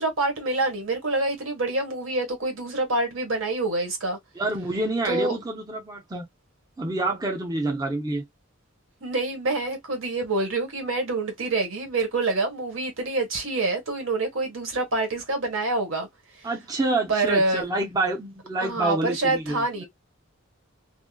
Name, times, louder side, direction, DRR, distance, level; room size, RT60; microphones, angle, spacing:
voice 1, 0.0-4.2 5.1-5.4 9.0-16.1 17.1-17.6 18.6-19.8, right 2 dB, 70° right, 1.4 m, -26 dB
voice 2, 4.3-6.3 6.8-8.2 16.4-19.8, right 2 dB, 20° right, 0.6 m, -27 dB
2.7 x 2.6 x 2.2 m
head